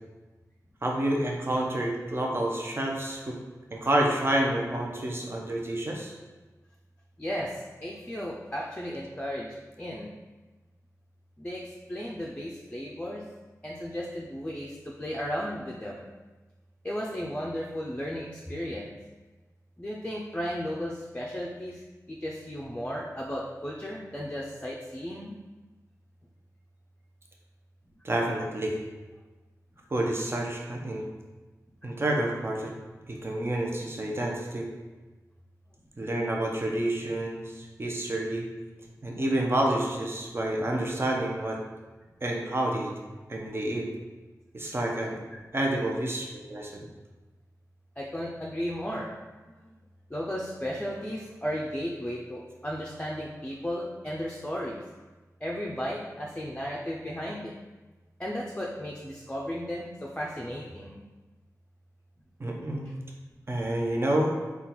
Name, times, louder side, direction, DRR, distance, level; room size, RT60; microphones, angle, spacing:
voice 1, 0.8-3.4 3.7-6.1 28.0-28.8 29.9-31.0 31.8-32.7 33.1-34.7 36.0-38.5 39.0-41.6 42.2-42.9 43.3-43.9 44.5-45.2 45.5-46.9 62.4-62.9 63.5-64.4, right 1 dB, 40° right, -1 dB, 0.7 m, -29 dB
voice 2, 7.2-10.1 11.4-13.2 13.6-16.0 16.8-18.9 19.8-25.5 48.0-49.1 49.5-49.8 50.1-54.8 55.4-57.5 58.2-61.0, equal, 20° left, -3 dB, 0.5 m, -35 dB
3.7 x 2.4 x 4.3 m, 1.2 s
wide cardioid pair, 65°, 6 cm